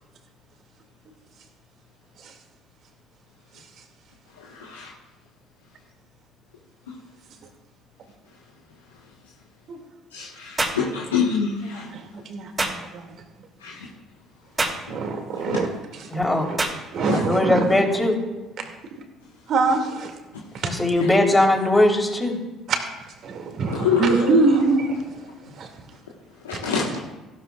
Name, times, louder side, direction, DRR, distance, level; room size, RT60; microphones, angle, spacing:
voice 1, 10.1-11.8 13.6-13.7 15.5-15.6 17.1-17.2 23.6-24.4 26.4-27.0, left 5 dB, 90° left, -3 dB, 1.4 m, -25 dB
sound 1, 10.6-10.8 12.6-12.8 14.6-14.8 16.6-16.8, right 2 dB, 25° right, 3.0 m, -25 dB
voice 2, 11.6-13.1 14.9-16.1 16.5-16.6 16.9-17.6 19.5-20.1 20.5-20.7 23.2-24.9 25.6-25.7 26.5-27.0, right 3 dB, 55° right, 4 dB, 2.3 m, -24 dB
voice 3, 16.1-16.5 17.1-18.2 20.6-22.4, left 1 dB, 10° left, 0 dB, 3.7 m, -20 dB
16.0 x 12.5 x 2.4 m, 1.1 s
hypercardioid pair, 60°, 0 cm